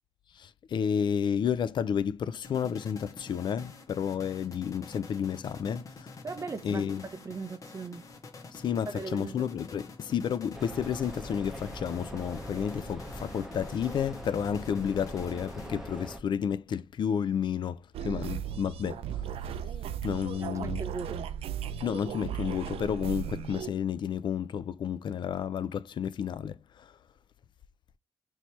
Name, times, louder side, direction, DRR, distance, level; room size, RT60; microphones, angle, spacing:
voice 1, 0.4-6.1 6.6-7.0 8.5-19.0 20.0-20.8 21.8-26.9, left 8 dB, 55° left, 0.3 m, -31 dB
sound 1, 2.4-16.1, left 3 dB, 35° left, 0.7 m, -48 dB
voice 2, 6.2-8.0 8.9-9.5 20.4-21.3, right 4 dB, 30° right, 0.6 m, -39 dB
sound 2, 10.5-16.2, equal, 5° right, 0.9 m, -42 dB
sound 3, 17.9-23.7, right 9 dB, 85° right, 0.4 m, -36 dB
3.1 x 2.8 x 4.4 m
cardioid pair, 130°, 10 cm